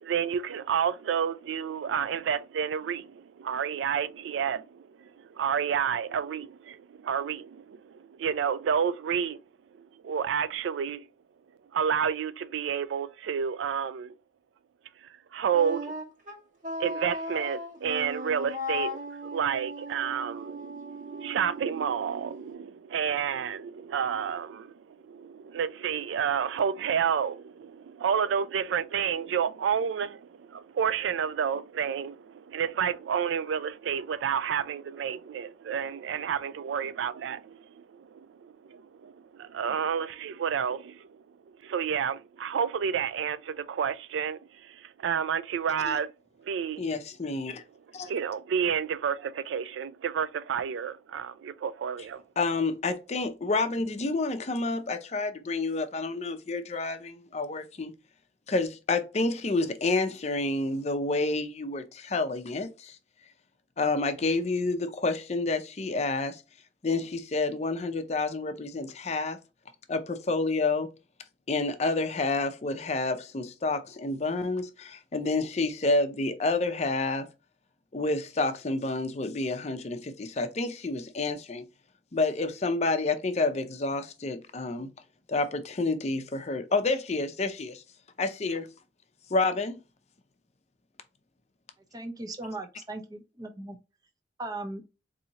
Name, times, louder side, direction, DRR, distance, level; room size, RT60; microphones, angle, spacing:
voice 1, 0.0-9.4 9.8-11.1 11.7-14.1 15.3-15.9 16.8-41.1 41.6-46.1 46.4-46.8 48.0-52.2, right 7 dB, 80° right, 0.3 m, -30 dB
Wind instrument woodwind instrument, 15.5-22.5, left 1 dB, 45° right, 1.1 m, -37 dB
voice 2, 46.8-47.6 47.9-48.1 52.4-57.9 58.5-63.0 63.8-66.4 66.8-69.4 69.9-70.9 71.5-77.3 77.9-81.6 82.1-84.9 85.3-87.8 88.2-88.7 89.3-89.8, left 3 dB, 35° left, 0.5 m, -29 dB
voice 3, 91.9-93.8 94.4-94.8, right 2 dB, 20° right, 0.5 m, -38 dB
4.1 x 2.7 x 2.8 m
head